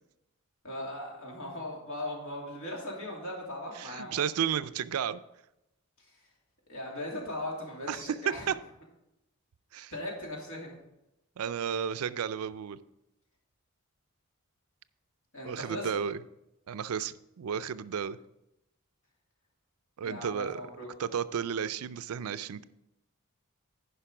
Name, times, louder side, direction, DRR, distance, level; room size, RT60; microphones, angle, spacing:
voice 1, 0.6-4.2 6.0-6.1 6.7-8.5 9.9-10.7 15.3-15.9 20.0-20.9, left 1 dB, 70° left, -2 dB, 2.8 m, -38 dB
voice 2, 3.8-5.2 7.9-8.1 8.5-8.6 9.7-9.9 11.4-12.8 15.4-16.2 16.7-18.2 20.0-20.6 21.0-22.6, right 7 dB, 80° right, 15 dB, 0.4 m, -33 dB
10.0 x 5.4 x 4.9 m, 0.88 s
head